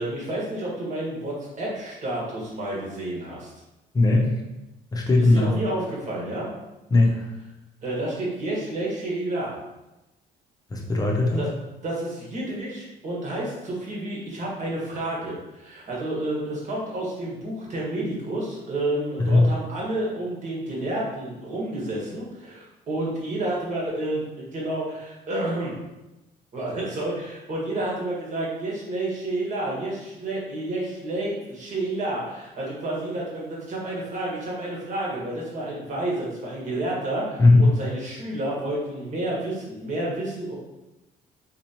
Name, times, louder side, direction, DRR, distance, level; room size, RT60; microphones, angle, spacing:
voice 1, 0.0-3.5 5.2-6.5 7.8-9.6 11.4-11.5 11.8-25.8 26.5-40.5, right 1 dB, 45° right, -4 dB, 1.5 m, -30 dB
voice 2, 3.9-4.3 4.9-5.5 6.9-7.3 10.7-11.4 19.2-19.5 37.4-37.7, left 2 dB, 20° left, -1 dB, 0.7 m, -18 dB
4.0 x 2.9 x 2.9 m, 1.0 s
cardioid pair, 110°, 17 cm